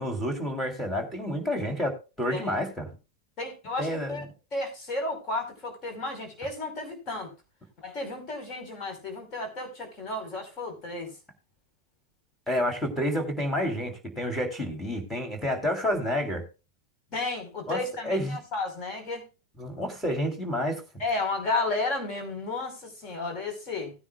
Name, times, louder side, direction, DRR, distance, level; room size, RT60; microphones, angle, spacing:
voice 1, 0.0-2.9 3.8-4.2 12.5-16.4 17.7-18.4 19.6-20.8, equal, 5° left, 2 dB, 3.4 m, -29 dB
voice 2, 3.4-4.3 4.5-7.3 7.8-11.1 17.1-19.3 21.0-23.9, left 2 dB, 35° left, 5 dB, 4.6 m, -33 dB
18.0 x 9.8 x 2.4 m, 0.30 s
figure-of-eight pair, 90°, 0 cm